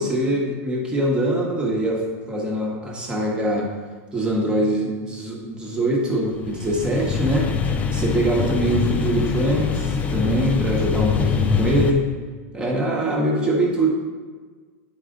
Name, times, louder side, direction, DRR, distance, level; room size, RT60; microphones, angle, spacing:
voice 1, 0.0-2.0 2.3-3.7 4.1-7.5 7.9-12.1 12.5-13.9, right 1 dB, 10° right, -1 dB, 1.2 m, -23 dB
sound 1, 6.3-11.9, left 5 dB, 20° left, 0.4 m, -23 dB
9.1 x 4.8 x 3.8 m, 1.5 s
supercardioid pair, 155°, 8 cm